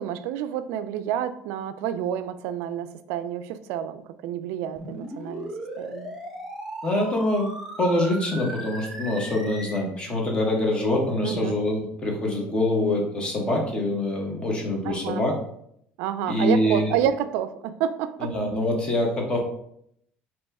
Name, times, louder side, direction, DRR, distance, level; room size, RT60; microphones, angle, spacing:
voice 1, 0.0-5.5 5.8-6.2 11.2-11.6 14.9-15.2 16.0-18.4, right 10 dB, 80° right, 11 dB, 0.3 m, -29 dB
sound 1, 4.8-9.8, right 1 dB, ahead, 1.1 m, -37 dB
voice 2, 6.8-7.5 7.8-15.3 16.3-16.9 18.2-19.4, left 1 dB, 25° left, 0 dB, 1.2 m, -25 dB
4.1 x 2.9 x 3.4 m, 0.71 s
cardioid pair, 120°, 4 cm